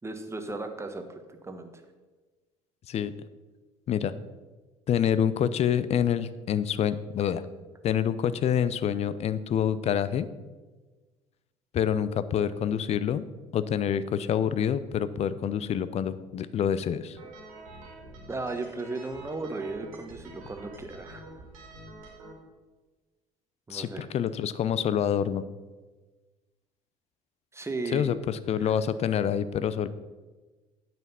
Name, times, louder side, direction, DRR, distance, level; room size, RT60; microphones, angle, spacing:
voice 1, 0.0-1.0 1.3-1.7 18.3-21.3 23.7-24.1 27.5-28.1 28.6-28.8, right 3 dB, 15° right, 7 dB, 1.2 m, -35 dB
voice 2, 4.9-7.4 7.8-10.3 11.7-13.2 13.5-17.2 23.7-25.4 27.9-29.9, left 9 dB, 40° left, 15 dB, 0.6 m, -27 dB
sound 1, 17.2-22.3, right 2 dB, 75° right, 2.0 m, -47 dB
8.9 x 6.0 x 5.5 m, 1.3 s
figure-of-eight pair, 60°, 17 cm